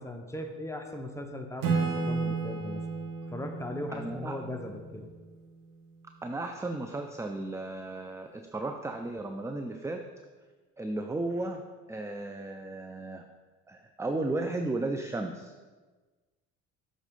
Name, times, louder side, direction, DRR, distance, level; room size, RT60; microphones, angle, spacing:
voice 1, 0.0-2.8 3.3-5.1, left 1 dB, 10° left, 3 dB, 1.0 m, -38 dB
Acoustic guitar / Strum, 1.6-5.2, right 4 dB, 75° right, 1.3 m, -32 dB
voice 2, 3.9-4.4 6.2-10.0 10.8-11.6 11.9-13.2 13.7-15.5, right 2 dB, 10° right, 5 dB, 0.5 m, -34 dB
7.2 x 3.8 x 5.3 m, 1.3 s
supercardioid pair, 65°, 34 cm